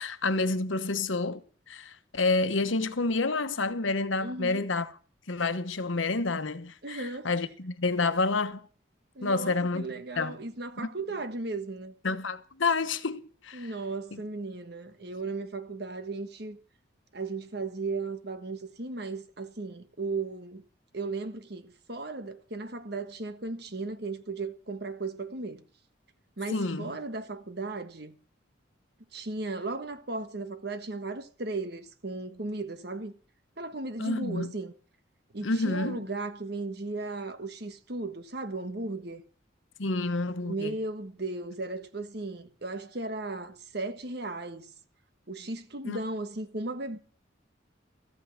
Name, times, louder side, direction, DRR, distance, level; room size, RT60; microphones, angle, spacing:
voice 1, 0.0-1.4 1.7-4.9 5.3-8.7 9.2-9.9 10.2-10.4 12.0-13.7 14.1-14.2 26.5-26.9 34.0-34.5 35.4-36.0 39.8-40.7 45.9-46.0, left 3 dB, 80° left, 1.1 m, -29 dB
voice 2, 4.2-4.6 6.8-7.3 9.1-11.9 13.5-16.6 17.1-20.6 20.9-25.6 26.4-28.1 29.1-33.1 33.6-34.7 35.3-39.2 40.4-44.7 45.3-47.0, right 3 dB, 55° right, 1.4 m, -36 dB
14.0 x 9.2 x 6.5 m
head